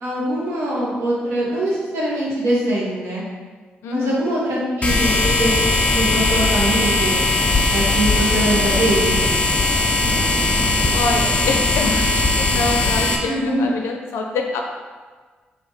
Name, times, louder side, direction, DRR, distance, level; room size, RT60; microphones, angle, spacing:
voice 1, 0.0-3.2 3.9-7.2 7.7-9.2 13.2-13.7, right 1 dB, 75° right, -6 dB, 1.4 m, -23 dB
voice 2, 3.8-4.2 10.9-14.6, left 3 dB, 75° left, 2 dB, 0.4 m, -25 dB
Street light noise, 4.8-13.2, left 2 dB, 30° left, 0.7 m, -19 dB
3.6 x 2.9 x 4.4 m, 1.4 s
hypercardioid pair, 45°, 4 cm